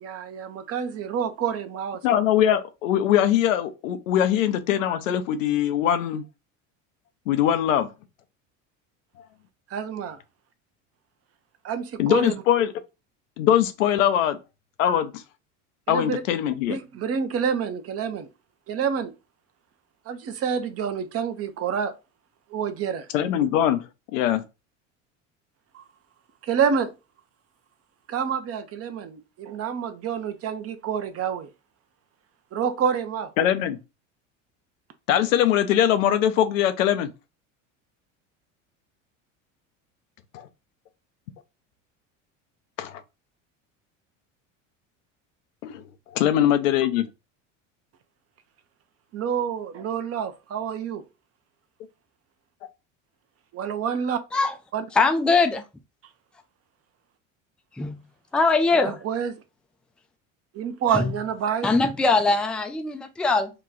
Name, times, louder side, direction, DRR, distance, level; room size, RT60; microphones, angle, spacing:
voice 1, 0.0-2.2 9.7-10.2 11.6-12.3 15.9-16.2 16.7-18.3 18.7-19.1 20.1-22.0 22.5-23.1 25.7-25.8 26.4-26.9 28.1-31.5 32.5-33.3 49.1-51.0 53.5-54.2 54.7-54.8 58.8-59.3 60.5-61.7, right 7 dB, 40° right, 0.6 m, -28 dB
voice 2, 2.0-6.2 7.3-7.9 12.0-12.7 13.4-14.4 14.8-15.2 15.9-16.8 23.1-23.9 24.1-24.4 33.4-33.8 35.1-37.1 40.3-40.5 42.8-43.0 45.6-45.8 46.1-47.1, left 10 dB, 90° left, 0.6 m, -22 dB
voice 3, 54.9-55.6 57.8-58.0 58.3-59.0 60.9-61.1 61.6-63.5, left 3 dB, 5° left, 0.3 m, -21 dB
2.9 x 2.2 x 3.6 m
supercardioid pair, 90°, 38 cm